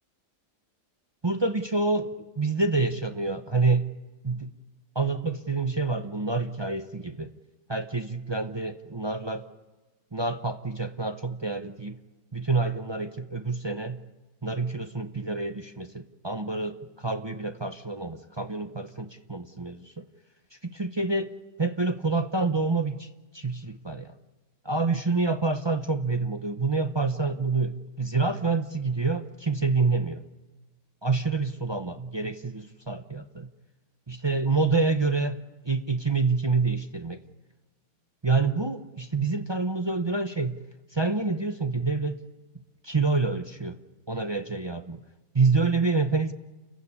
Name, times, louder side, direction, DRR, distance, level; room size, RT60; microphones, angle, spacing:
voice 1, 1.2-3.9 4.2-4.5 4.9-7.3 7.7-9.5 10.1-12.0 12.3-14.0 14.4-20.0 20.6-21.3 21.6-23.1 23.3-24.1 24.6-30.2 31.0-33.5 34.1-35.4 35.6-37.2 38.2-40.6 40.9-42.2 42.8-43.8 44.1-45.0 45.3-46.3, right 3 dB, 40° right, 7 dB, 0.4 m, -27 dB
29.0 x 16.0 x 9.8 m, 1.2 s
omnidirectional pair, 1.8 m